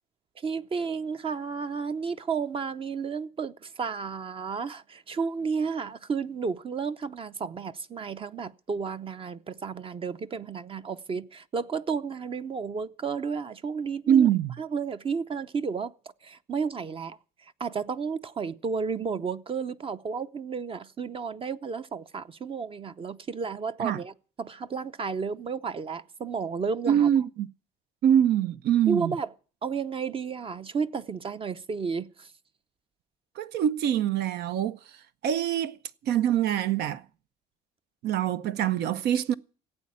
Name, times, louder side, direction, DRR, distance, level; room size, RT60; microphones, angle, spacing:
voice 1, 0.4-14.3 14.6-15.9 16.2-17.2 17.6-24.1 24.4-27.1 28.9-29.3 29.6-32.3, right 5 dB, 30° right, 0.7 m, -32 dB
voice 2, 14.1-14.6 23.8-24.0 26.9-27.5 28.0-29.2 33.4-35.0 35.2-35.8 36.0-37.0 38.0-39.3, right 10 dB, 75° right, 0.7 m, -24 dB
16.0 x 8.5 x 8.5 m
cardioid pair, 110°, 17 cm